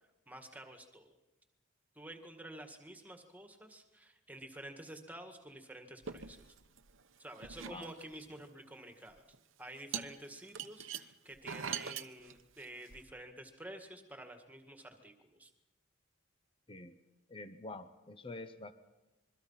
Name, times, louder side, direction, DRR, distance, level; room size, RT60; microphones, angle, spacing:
voice 1, 0.3-1.2 2.0-6.5 7.2-9.2 9.6-15.5, right 1 dB, 10° right, 5 dB, 1.9 m, -50 dB
sound 1, 6.0-7.0 7.3-8.4 9.2-9.4 9.9-13.0, right 7 dB, 65° right, 1.0 m, -43 dB
voice 2, 17.3-18.7, left 2 dB, 25° left, 10 dB, 0.9 m, -47 dB
26.5 x 22.5 x 5.8 m, 1.0 s
head